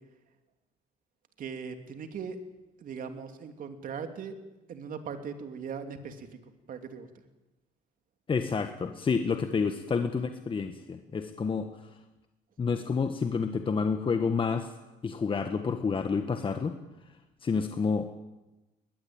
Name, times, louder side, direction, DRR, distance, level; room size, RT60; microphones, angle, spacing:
voice 1, 1.4-2.4 2.8-4.4 4.7-6.4 6.7-7.1, right 6 dB, 55° right, 7 dB, 3.0 m, -39 dB
voice 2, 8.3-11.7 12.6-14.7 15.0-16.7 17.4-18.1, left 5 dB, 30° left, 7 dB, 1.5 m, -29 dB
21.0 x 20.5 x 8.9 m, 1.0 s
cardioid pair, 110°, 17 cm